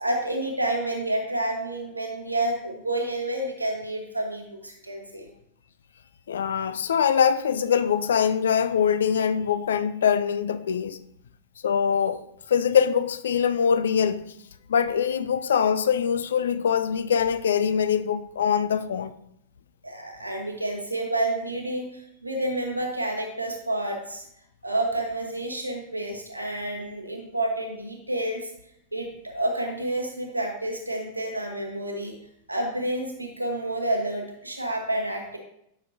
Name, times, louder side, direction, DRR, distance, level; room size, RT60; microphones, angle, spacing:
voice 1, 0.0-5.3 19.8-24.2 24.6-28.5 28.9-32.1 32.5-35.4, right 1 dB, 85° right, 1.2 m, -29 dB
voice 2, 6.3-11.0 11.6-14.3 14.7-19.2, left 7 dB, 65° left, 0.3 m, -23 dB
10.0 x 5.8 x 2.7 m
figure-of-eight pair, 90°, 0 cm